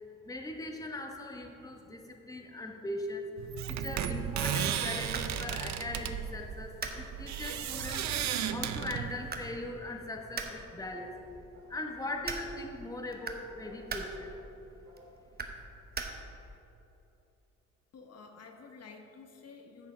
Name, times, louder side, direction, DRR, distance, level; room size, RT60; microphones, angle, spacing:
voice 1, 0.2-3.3 3.7-8.2 8.5-11.2 11.7-14.3, left 2 dB, 10° left, 2 dB, 1.0 m, -40 dB
sound 1, 3.4-9.5, right 9 dB, 65° right, 0.6 m, -34 dB
sound 2, 4.8-16.6, right 4 dB, 30° right, 1.0 m, -44 dB
sound 3, 10.9-11.2 11.5-11.8 12.2-12.5 13.6-13.9 14.2-14.4 14.8-15.1, right 1 dB, 85° right, 2.1 m, -58 dB
voice 2, 17.9-19.9, left 4 dB, 55° left, 3 dB, 1.1 m, -51 dB
10.0 x 6.5 x 5.0 m, 2.9 s
cardioid pair, 90°, 30 cm